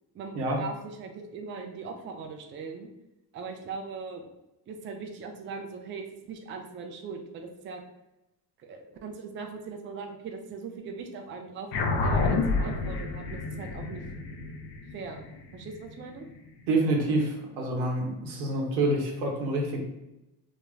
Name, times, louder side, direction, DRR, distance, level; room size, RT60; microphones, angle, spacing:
voice 1, 0.1-2.9 3.3-4.3 4.7-7.8 8.6-14.0 14.9-15.2 15.5-16.3, right 4 dB, 25° right, 3 dB, 0.3 m, -40 dB
sound 1, 11.7-16.5, left 3 dB, 50° left, 0.5 m, -29 dB
voice 2, 16.7-19.8, right 2 dB, 85° right, 0 dB, 0.9 m, -27 dB
2.2 x 2.1 x 3.1 m, 0.93 s
hypercardioid pair, 70°, 50 cm